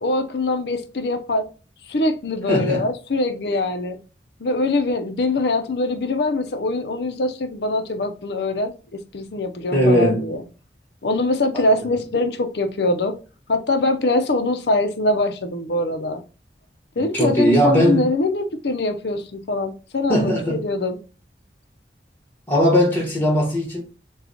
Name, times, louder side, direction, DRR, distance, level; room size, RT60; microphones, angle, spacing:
voice 1, 0.0-1.5 1.9-4.0 4.4-10.4 11.0-13.1 13.5-16.2 17.0-21.0, left 2 dB, 70° left, 0.6 m, -23 dB
voice 2, 2.5-2.9 9.7-10.2 17.0-18.1 20.1-20.6 22.5-23.8, equal, 10° left, 1.4 m, -19 dB
6.8 x 2.3 x 2.8 m
head